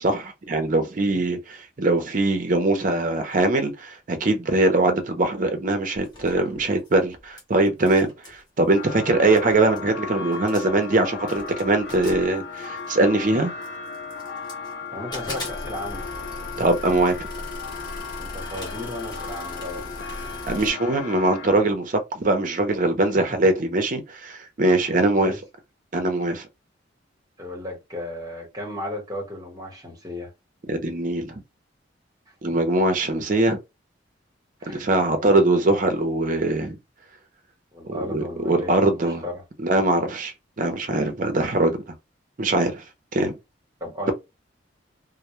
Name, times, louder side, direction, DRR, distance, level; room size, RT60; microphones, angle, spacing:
voice 1, 0.0-13.5 16.6-17.2 20.5-25.3 25.9-26.5 30.7-31.3 32.4-33.6 34.7-36.8 37.8-39.2 39.6-41.8 42.4-42.8 43.1-43.3, right 2 dB, 45° right, 0.5 m, -22 dB
sound 1, 5.9-7.4 7.7-8.4 9.1-9.2 9.3-9.9 10.3-10.8 11.3-13.0 13.6-14.7 15.1-20.7, left 1 dB, 25° left, 0.8 m, -39 dB
sound 2, 8.7-21.6, left 5 dB, 70° left, 0.6 m, -36 dB
voice 2, 14.9-16.1 18.2-19.8 23.1-23.3 24.8-25.4 27.4-30.3 34.6-35.3 37.7-39.4 43.8-44.1, left 1 dB, 20° right, 1.0 m, -35 dB
2.1 x 2.0 x 2.9 m
head